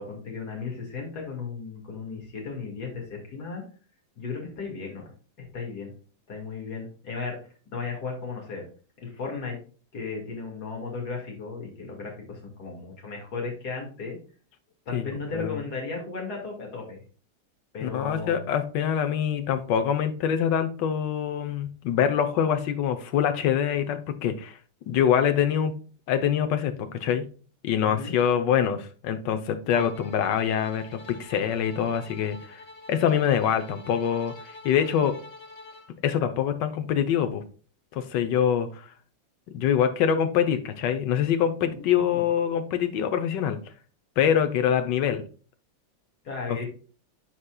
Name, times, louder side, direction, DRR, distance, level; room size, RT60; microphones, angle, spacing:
voice 1, 0.0-3.6 4.2-5.0 5.4-5.9 6.3-7.4 7.7-8.6 9.0-9.6 9.9-14.2 14.9-17.0 17.7-18.5 27.8-28.1 41.7-42.3 46.2-46.7, left 4 dB, 55° left, 0 dB, 2.6 m, -35 dB
voice 2, 17.8-24.6 24.9-25.8 26.1-27.3 27.6-32.6 32.9-34.3 34.6-35.1 36.0-37.4 37.9-38.9 39.5-43.6 44.2-45.2 46.5-46.7, left 8 dB, 70° left, 8 dB, 1.4 m, -25 dB
Bowed string instrument, 29.7-35.9, left 2 dB, 30° left, 0.6 m, -45 dB
12.5 x 4.2 x 2.3 m, 0.38 s
omnidirectional pair, 2.1 m